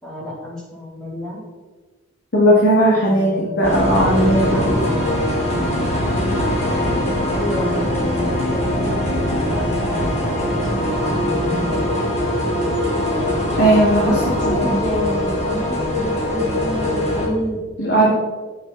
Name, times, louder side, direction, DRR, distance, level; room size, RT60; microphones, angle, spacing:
voice 1, 0.0-1.4 2.9-5.1 7.3-12.4 13.9-17.6, equal, 5° left, -8 dB, 3.5 m, -30 dB
voice 2, 2.3-3.3 3.6-4.7 13.6-14.1 14.4-14.7 17.8-18.1, right 1 dB, 60° left, -5 dB, 2.3 m, -16 dB
sound 1, 3.6-17.3, left 1 dB, 35° left, 2.8 m, -21 dB
9.8 x 8.2 x 4.2 m, 1.3 s
head